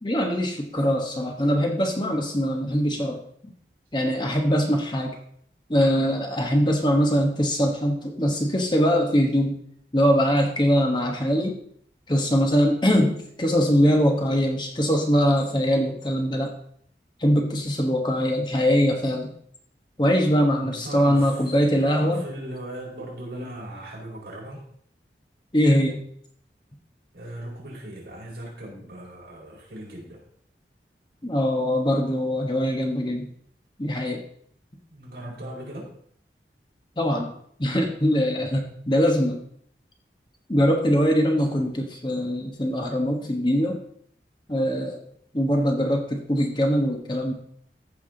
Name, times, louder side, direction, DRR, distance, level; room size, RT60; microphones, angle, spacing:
voice 1, 0.0-3.2 3.9-5.2 5.7-9.6 9.9-11.5 12.1-16.5 17.2-19.3 20.0-22.2 25.5-26.0 31.2-33.3 33.8-34.2 37.0-37.3 37.6-39.4 40.5-43.8 44.5-45.0 45.3-47.3, equal, 25° left, 3 dB, 1.1 m, -22 dB
voice 2, 20.6-21.4 21.8-24.6 27.1-30.2 34.9-35.9, right 1 dB, 65° right, -4 dB, 4.4 m, -38 dB
14.5 x 5.9 x 3.9 m, 0.63 s
head